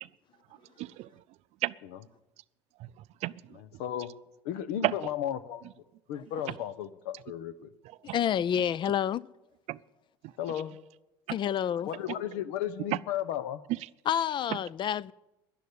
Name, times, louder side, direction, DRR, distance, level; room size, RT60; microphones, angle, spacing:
voice 1, 0.8-1.2 1.6-1.7 2.8-3.8 4.8-4.9 6.5-6.6 7.8-8.2 9.7-9.8 10.2-10.3 11.3-11.4 12.9-13.0 13.7-13.8, right 17 dB, 65° right, 0.5 m, -33 dB
voice 2, 3.8-4.1 4.4-5.6 6.1-7.7 10.4-10.8 11.9-13.6, left 10 dB, 80° left, 0.9 m, -34 dB
voice 3, 8.1-9.2 11.3-11.9 14.1-15.1, left 9 dB, 40° left, 0.4 m, -28 dB
11.5 x 11.0 x 8.3 m
supercardioid pair, 95°, 12 cm